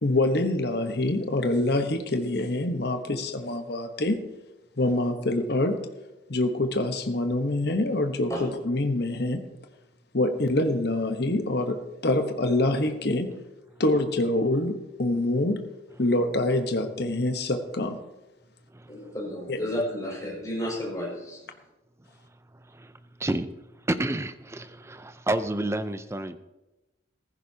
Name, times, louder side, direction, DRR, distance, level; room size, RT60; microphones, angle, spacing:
voice 1, 0.0-4.2 4.8-5.8 6.3-9.4 10.1-13.3 13.8-15.6 16.0-18.0 19.5-19.6, left 2 dB, 55° left, 7 dB, 1.0 m, -25 dB
voice 2, 18.9-21.4, left 1 dB, 20° left, -4 dB, 5.5 m, -32 dB
voice 3, 23.9-26.4, right 1 dB, 15° right, 11 dB, 0.5 m, -29 dB
15.0 x 14.5 x 2.8 m, 1.0 s
head